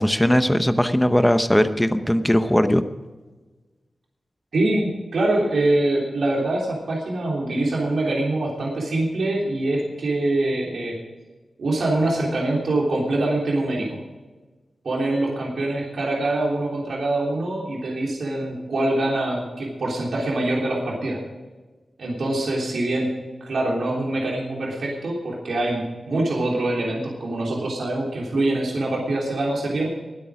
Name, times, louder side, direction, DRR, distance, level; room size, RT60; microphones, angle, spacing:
voice 1, 0.0-2.8, equal, 5° left, 9 dB, 0.8 m, -19 dB
voice 2, 4.5-11.0 11.6-14.0 14.8-21.2 22.0-23.1 23.5-29.9, right 2 dB, 75° right, -3 dB, 3.3 m, -24 dB
21.5 x 8.5 x 5.0 m, 1.3 s
wide cardioid pair, 150°, 0 cm